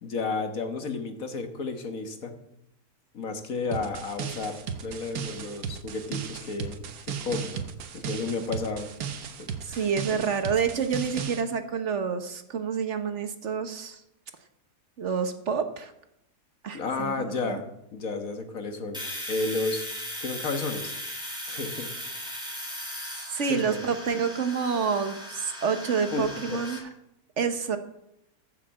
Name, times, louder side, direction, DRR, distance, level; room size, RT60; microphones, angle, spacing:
voice 1, 0.0-2.3 3.1-6.9 7.2-7.7 7.9-8.9 9.4-10.2 16.7-17.6 17.9-19.0 19.3-19.9 20.2-21.0 21.5-22.2 23.4-23.8 26.1-26.6, left 4 dB, 70° left, 6 dB, 1.8 m, -32 dB
sound 1, 3.7-11.4, right 7 dB, 80° right, 1.5 m, -35 dB
voice 2, 9.6-14.0 15.0-15.9 16.6-17.6 23.3-26.9 27.4-27.8, right 6 dB, 55° right, 9 dB, 1.2 m, -28 dB
Domestic sounds home sounds, 18.9-26.8, equal, 5° right, 3.5 m, -38 dB
14.5 x 6.7 x 7.5 m, 0.82 s
omnidirectional pair, 1.5 m